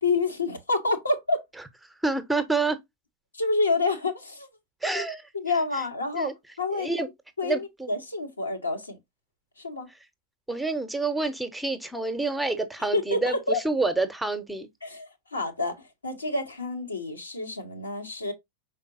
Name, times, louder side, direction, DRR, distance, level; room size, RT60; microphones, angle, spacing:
voice 1, 0.0-1.4 3.3-4.5 5.3-6.9 7.4-9.0 9.6-9.9 12.9-13.6 14.8-18.3, left 3 dB, 80° left, 1.1 m, -28 dB
voice 2, 2.0-2.8 4.8-5.3 6.1-6.3 6.8-7.1 7.4-7.9 10.5-14.7, right 3 dB, 5° right, 0.8 m, -28 dB
5.2 x 4.0 x 2.5 m
figure-of-eight pair, 90°, 0 cm